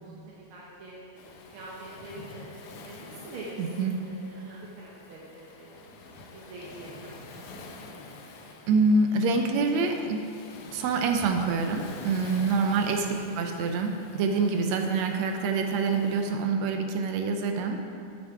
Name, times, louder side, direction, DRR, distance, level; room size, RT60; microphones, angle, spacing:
voice 1, 0.0-2.5 2.8-7.8 12.7-12.9, right 2 dB, 60° right, -5 dB, 1.5 m, -45 dB
Waves surf, 1.2-16.3, left 3 dB, 75° left, 1.3 m, -47 dB
voice 2, 3.6-4.0 8.7-10.3 10.7-13.1 13.3-17.8, right 4 dB, 80° right, 5 dB, 1.8 m, -26 dB
8.8 x 7.4 x 4.8 m, 2.4 s
omnidirectional pair, 3.4 m